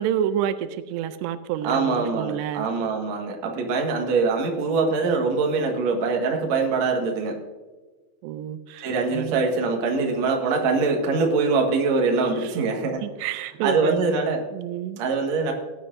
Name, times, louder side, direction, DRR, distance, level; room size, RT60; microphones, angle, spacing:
voice 1, 0.0-2.7 8.2-9.4 12.2-12.6 13.0-15.0, right 10 dB, 85° right, 11 dB, 2.7 m, -29 dB
voice 2, 1.6-7.4 8.8-13.0 13.6-14.4 15.0-15.5, right 4 dB, 55° right, 1 dB, 2.4 m, -23 dB
18.5 x 9.8 x 2.6 m, 1.3 s
omnidirectional pair, 4.8 m